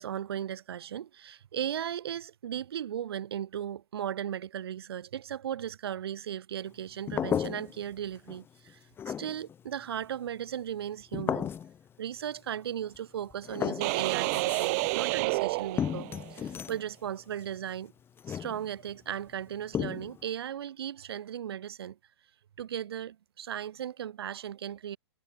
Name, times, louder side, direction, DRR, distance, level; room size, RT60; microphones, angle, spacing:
voice 1, 0.0-8.8 9.1-11.5 12.0-17.9 18.3-22.0 22.6-25.0, right 10 dB, 60° right, 6.4 m, -36 dB
sound 1, 7.1-8.0 8.3-8.7 9.0-9.6 11.1-11.8 13.0-13.1 13.3-14.9 15.8-16.9 18.2-18.9 19.7-20.2, left 8 dB, 15° left, 0.6 m, -34 dB
sound 2, 13.8-16.4, right 29 dB, 35° right, 0.5 m, -30 dB
figure-of-eight pair, 110°, 14 cm